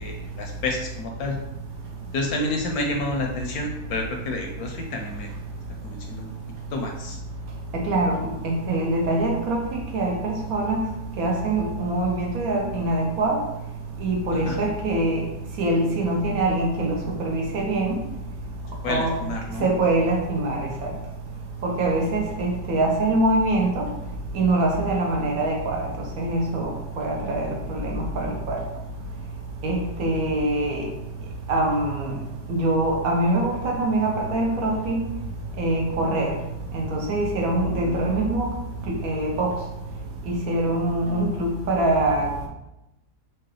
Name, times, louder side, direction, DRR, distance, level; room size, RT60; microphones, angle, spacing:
voice 1, 0.0-1.4 2.1-5.3 5.8-6.3 6.7-7.2 14.5-14.6 18.8-19.7 37.7-38.0, left 2 dB, 70° left, 2 dB, 0.9 m, -29 dB
voice 2, 7.7-8.2 8.4-10.8 11.2-13.4 14.0-15.2 15.6-18.0 18.9-19.2 19.6-20.9 21.6-23.8 24.3-25.9 26.2-28.6 29.6-30.9 31.5-32.1 32.5-35.0 35.6-36.3 36.7-38.5 39.0-39.5 40.3-42.3, right 2 dB, 70° right, 0 dB, 0.9 m, -24 dB
4.5 x 2.4 x 3.1 m, 0.93 s
omnidirectional pair, 1.8 m